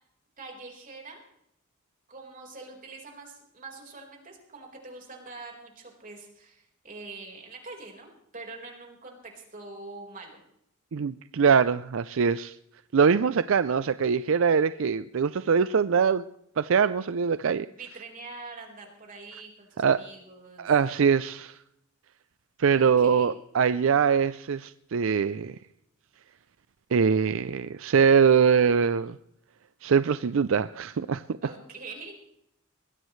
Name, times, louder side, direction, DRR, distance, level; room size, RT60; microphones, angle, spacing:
voice 1, 0.4-1.2 2.1-10.4 17.7-20.7 22.7-23.4 31.4-32.1, right 3 dB, 40° right, 0 dB, 4.5 m, -44 dB
voice 2, 10.9-12.6 12.9-16.2 16.6-17.7 19.8-20.0 20.6-21.6 22.6-25.6 26.9-29.2 29.8-31.2, right 6 dB, 70° right, 14 dB, 0.5 m, -23 dB
21.5 x 15.5 x 3.2 m, 0.76 s
head